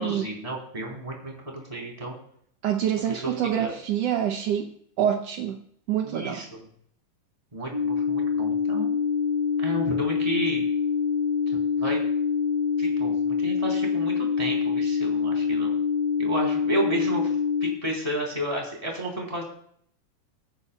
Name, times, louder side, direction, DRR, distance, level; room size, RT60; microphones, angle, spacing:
voice 1, 0.0-2.1 3.1-3.7 6.0-6.6 7.5-9.0 9.6-10.6 11.5-12.1 12.8-15.7 16.2-17.3 17.6-19.4, right 1 dB, 10° right, -1 dB, 3.3 m, -32 dB
voice 2, 2.6-4.7 5.0-5.6 5.9-6.4, right 10 dB, 75° right, 4 dB, 1.4 m, -26 dB
sound 1, 7.7-17.7, left 5 dB, 55° left, 6.0 m, -25 dB
24.0 x 9.7 x 2.3 m, 0.66 s
omnidirectional pair, 3.9 m